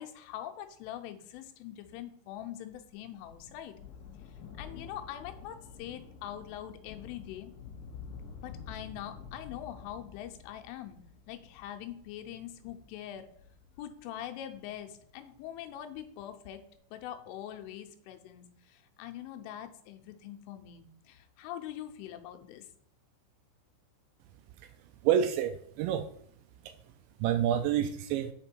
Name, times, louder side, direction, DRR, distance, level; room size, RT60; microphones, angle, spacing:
voice 1, 0.0-3.7 4.3-7.5 8.4-11.0 11.3-13.3 13.8-16.6 16.9-22.7, left 11 dB, 90° left, 5 dB, 3.3 m, -43 dB
Thunder, 2.7-15.6 16.5-16.6, left 6 dB, 70° left, 1.9 m, -50 dB
voice 2, 25.0-26.1 26.6-26.8 27.2-28.3, right 9 dB, 85° right, 9 dB, 2.6 m, -28 dB
8.9 x 5.1 x 4.5 m, 0.68 s
omnidirectional pair, 5.6 m